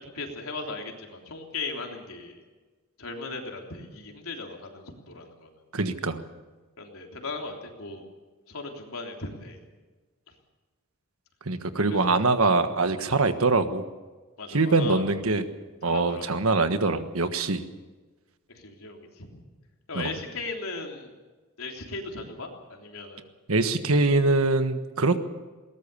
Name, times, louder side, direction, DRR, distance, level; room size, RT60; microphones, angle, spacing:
voice 1, 0.0-2.4 3.0-5.5 6.8-8.1 8.5-9.6 10.3-10.4 11.9-12.2 13.0-13.2 14.4-15.0 15.8-16.4 18.5-19.4 19.9-21.1 21.6-23.2, left 3 dB, 80° left, 2 dB, 3.5 m, -37 dB
voice 2, 5.7-6.2 11.4-13.8 14.5-15.4 15.8-17.6 19.9-20.1 23.5-25.2, right 3 dB, 85° right, 9 dB, 1.4 m, -23 dB
21.0 x 18.5 x 6.9 m, 1.3 s
head